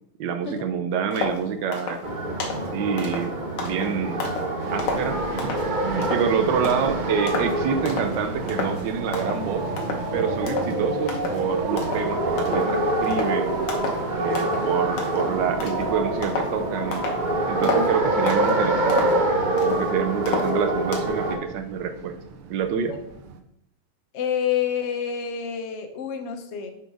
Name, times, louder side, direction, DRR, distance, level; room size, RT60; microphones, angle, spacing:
voice 1, 0.2-2.0 2.7-4.3 4.7-5.5 5.8-9.7 10.1-13.6 14.1-17.1 17.5-19.2 19.6-22.1 22.5-23.0, right 6 dB, 70° right, 9 dB, 1.1 m, -27 dB
sound 1, 1.1-1.4 1.7-2.0 2.4-2.7 3.0-4.5 4.8-5.7 6.0-6.3 6.6-7.0 7.3-7.6 7.9-8.2 8.5-8.8 9.1-9.5 9.8-10.1 10.5-10.7 11.1-11.4 11.8-12.1 12.4-12.8 13.0-13.4 13.7-14.0 14.3-14.7 15.0-16.6 16.9-17.2 17.6-17.9 18.3-18.6 18.9-19.9 20.3-21.1, left 3 dB, 85° left, 2.1 m, -31 dB
sound 2, 2.0-21.4, right 2 dB, 40° right, 0.6 m, -26 dB
sound 3, 4.6-23.4, right 6 dB, 90° right, 1.6 m, -40 dB
voice 2, 24.1-26.7, left 8 dB, 65° left, 5 dB, 0.6 m, -28 dB
6.6 x 4.7 x 5.0 m, 0.79 s
omnidirectional pair, 2.4 m